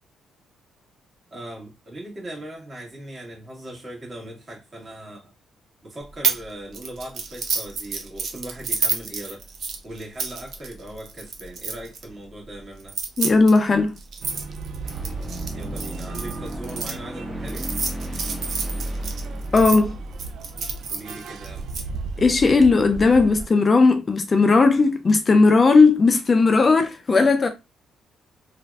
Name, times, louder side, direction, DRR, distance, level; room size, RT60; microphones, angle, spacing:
voice 1, 1.3-5.2 5.8-9.4 9.8-13.0 15.5-17.7 20.9-21.7, right 1 dB, 35° right, 1.7 m, -39 dB
sound 1, 6.2-6.4 6.7-12.0 12.8-16.9 17.5-19.8 20.2-21.8, right 5 dB, 60° right, 0.7 m, -29 dB
voice 2, 13.2-13.9 19.5-20.0 22.2-27.5, left 3 dB, 35° left, 0.4 m, -17 dB
sound 2, 14.2-23.5, right 4 dB, 75° right, 0.3 m, -36 dB
sound 3, 14.8-21.5, right 1 dB, 20° right, 0.9 m, -34 dB
3.3 x 2.4 x 2.3 m
cardioid pair, 90°, 0 cm